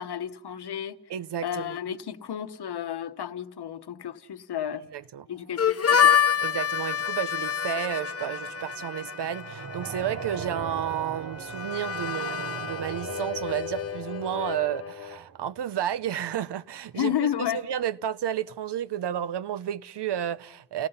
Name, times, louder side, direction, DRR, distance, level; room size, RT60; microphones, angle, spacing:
voice 1, 0.0-1.0 1.4-4.8 5.3-6.2 16.9-17.6, left 9 dB, 75° left, 1.0 m, -32 dB
voice 2, 1.1-1.8 4.9-5.2 6.4-17.1 17.5-20.9, right 10 dB, 85° right, 0.7 m, -31 dB
sound 1, 5.3-16.2, right 6 dB, 50° right, 1.0 m, -41 dB
Harmonica, 5.6-15.2, left 8 dB, 35° left, 0.7 m, -28 dB
29.0 x 18.5 x 5.6 m
wide cardioid pair, 180°, 40 cm